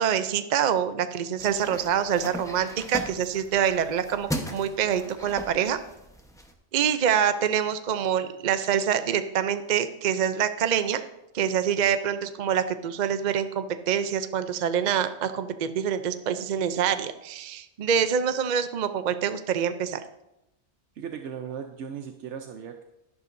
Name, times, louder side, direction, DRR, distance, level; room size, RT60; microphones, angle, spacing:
voice 1, 0.0-5.8 6.7-11.0 11.3-20.0, right 8 dB, 50° right, 10 dB, 0.6 m, -26 dB
sound 1, 1.4-6.5, equal, 5° left, 0.9 m, -38 dB
voice 2, 21.0-22.8, right 7 dB, 80° right, 6 dB, 1.0 m, -37 dB
12.0 x 11.0 x 2.6 m, 0.89 s
omnidirectional pair, 1.2 m